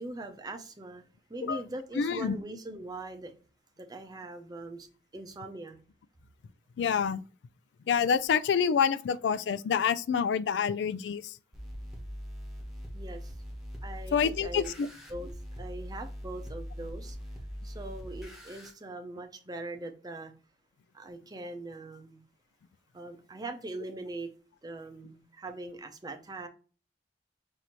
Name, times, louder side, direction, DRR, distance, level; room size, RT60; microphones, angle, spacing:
voice 1, 0.0-3.3 3.8-4.9 5.1-5.8 12.9-13.3 13.8-14.7 15.1-15.3 15.6-17.2 17.6-20.3 20.9-22.2 22.9-24.3 24.6-26.5, right 2 dB, 20° right, 0.6 m, -41 dB
voice 2, 2.0-2.4 6.8-7.2 7.9-11.4 14.1-14.9, left 7 dB, 75° left, 0.3 m, -27 dB
sound 1, 11.5-18.7, equal, ahead, 1.0 m, -42 dB
5.8 x 2.7 x 3.0 m
head